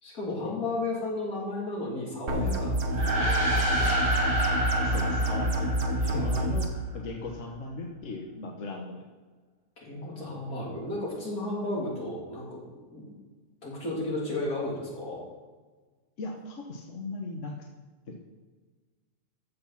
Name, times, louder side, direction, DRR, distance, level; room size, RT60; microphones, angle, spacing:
voice 1, 0.0-3.9 6.0-6.3 9.8-13.0 13.6-15.2, left 2 dB, 80° left, -4 dB, 3.6 m, -34 dB
sound 1, 2.3-6.7, right 1 dB, 60° right, 1.4 m, -27 dB
sound 2, 2.8-6.5, right 1 dB, 85° right, 2.6 m, -29 dB
voice 2, 4.8-5.7 6.0-6.7 6.9-9.0 16.2-17.5 18.1-18.2, left 2 dB, 55° left, 1 dB, 1.4 m, -37 dB
13.5 x 6.1 x 5.8 m, 1.4 s
omnidirectional pair, 1.6 m